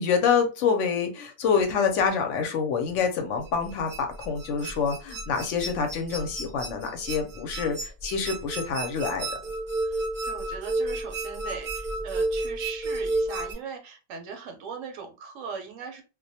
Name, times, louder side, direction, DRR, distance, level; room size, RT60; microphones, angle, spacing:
voice 1, 0.0-9.3, left 6 dB, 70° left, 0.8 m, -26 dB
sound 1, 3.4-13.5, right 2 dB, 45° right, 0.6 m, -31 dB
voice 2, 9.8-16.0, right 6 dB, 75° right, 0.9 m, -39 dB
2.3 x 2.1 x 2.6 m
omnidirectional pair, 1.4 m